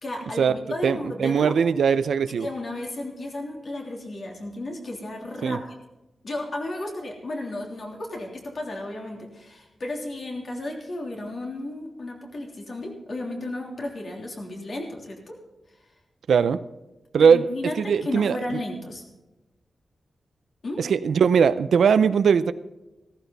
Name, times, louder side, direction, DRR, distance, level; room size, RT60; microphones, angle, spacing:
voice 1, 0.0-1.5 2.3-5.8 6.2-15.4 17.2-19.0 20.6-20.8, left 1 dB, 45° left, 0 dB, 3.2 m, -33 dB
voice 2, 0.8-2.5 5.4-5.6 16.3-16.6 17.1-17.5 17.8-18.6 20.8-22.5, right 6 dB, 90° right, 13 dB, 0.6 m, -20 dB
16.0 x 14.0 x 4.1 m, 1.0 s
wide cardioid pair, 155°, 0 cm